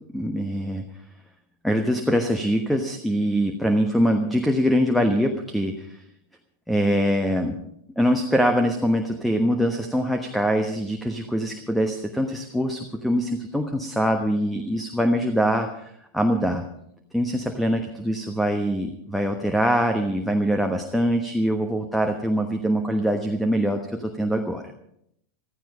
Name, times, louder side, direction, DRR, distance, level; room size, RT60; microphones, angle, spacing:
voice 1, 0.1-0.8 1.6-6.0 6.7-7.6 8.0-16.6 17.1-24.6, equal, ahead, 6 dB, 1.2 m, -23 dB
15.5 x 13.5 x 5.3 m, 0.75 s
figure-of-eight pair, 90°, 0 cm